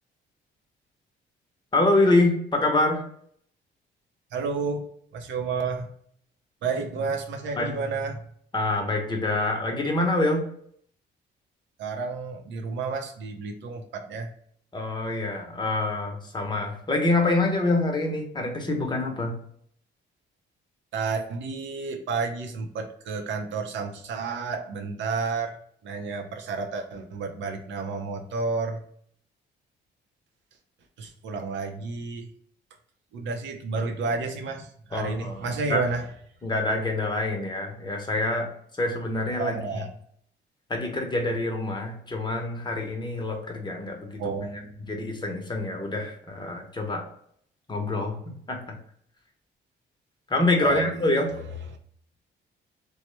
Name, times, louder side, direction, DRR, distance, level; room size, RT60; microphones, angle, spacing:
voice 1, 1.7-3.0 7.6-7.7 8.5-10.4 14.7-19.4 34.9-35.8 36.4-38.5 38.8-39.8 40.7-44.4 44.9-47.0 47.7-48.2 48.5-48.8 50.3-51.3, left 2 dB, 20° left, 2 dB, 0.8 m, -26 dB
voice 2, 4.3-4.8 5.1-5.9 6.6-8.2 11.8-14.3 20.9-25.5 25.8-28.8 31.0-32.3 33.1-36.0 39.4-39.9 44.2-44.8 50.6-50.9, right 4 dB, 70° right, 4 dB, 0.6 m, -31 dB
3.0 x 2.1 x 3.1 m, 0.64 s
cardioid pair, 90°, 20 cm